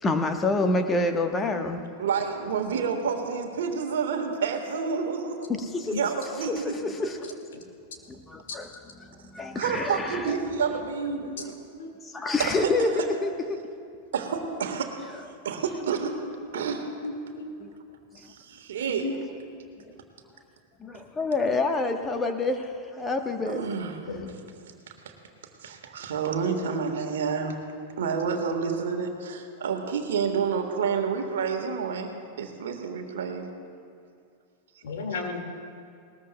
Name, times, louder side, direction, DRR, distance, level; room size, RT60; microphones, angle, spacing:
voice 1, 0.0-1.9 5.5-5.9 6.6-7.3 8.1-10.3 12.0-13.6 17.6-17.7 19.8-19.9 20.8-23.6, left 2 dB, 15° left, 6 dB, 1.2 m, -28 dB
voice 2, 2.0-5.5 5.9-6.8 9.5-11.6 12.4-12.7 14.1-14.9 15.4-16.2 16.5-16.8 18.1-19.1 23.4-24.0 25.0-25.1 25.6-27.6 28.0-33.5, right 6 dB, 60° right, 4 dB, 1.6 m, -29 dB
voice 3, 17.0-17.5 18.9-19.2 24.1-24.3 26.5-26.8 27.1-27.2 34.8-35.4, left 3 dB, 60° left, 3 dB, 2.1 m, -34 dB
20.0 x 20.0 x 2.3 m, 2.4 s
figure-of-eight pair, 90°, 0 cm